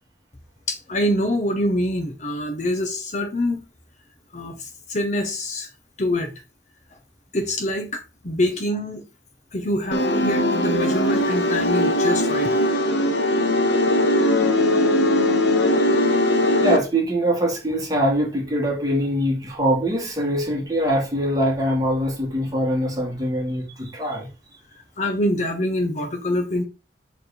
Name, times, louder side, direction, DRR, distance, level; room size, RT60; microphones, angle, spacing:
voice 1, 0.7-3.6 4.3-5.7 6.0-6.3 7.3-9.0 9.5-12.5 25.0-26.6, left 1 dB, 40° left, 0.9 m, -25 dB
sound 1, 9.9-16.8, left 1 dB, 75° left, 1.0 m, -20 dB
voice 2, 16.6-24.3, equal, 20° right, 2.0 m, -23 dB
6.7 x 3.6 x 4.2 m
head